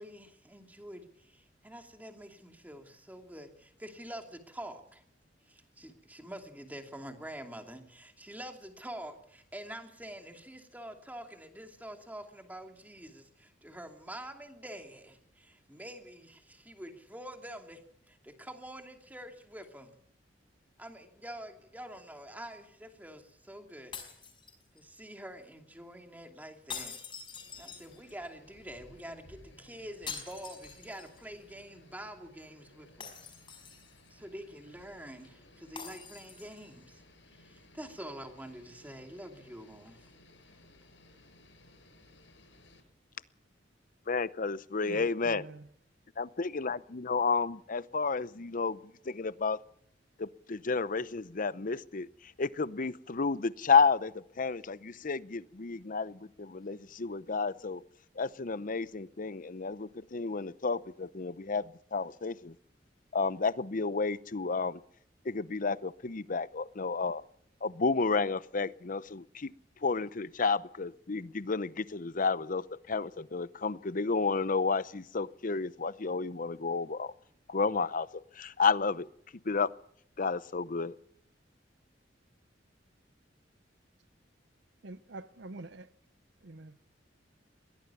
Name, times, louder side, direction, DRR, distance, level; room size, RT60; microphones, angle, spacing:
voice 1, 0.0-5.0 5.5-17.8 18.1-20.0 20.8-23.9 24.7-27.0 27.6-33.2 34.1-37.0 37.3-40.1, right 1 dB, 10° right, 2.7 m, -46 dB
sound 1, 23.9-25.0 26.7-28.3 30.1-31.3 31.6-31.7 33.0-34.1 35.8-36.7, left 6 dB, 30° left, 5.1 m, -45 dB
sound 2, 27.3-42.8, left 1 dB, 80° left, 7.0 m, -59 dB
voice 2, 44.1-45.4 46.2-49.6 50.2-52.1 52.4-57.8 58.2-62.5 63.1-64.8 65.2-67.2 67.6-69.5 69.8-77.1 77.5-79.1 79.4-79.7 80.2-81.0, left 4 dB, 45° left, 0.8 m, -31 dB
voice 3, 44.8-45.7 84.8-85.9 86.4-86.8, right 2 dB, 70° right, 0.9 m, -46 dB
22.0 x 16.5 x 7.1 m
head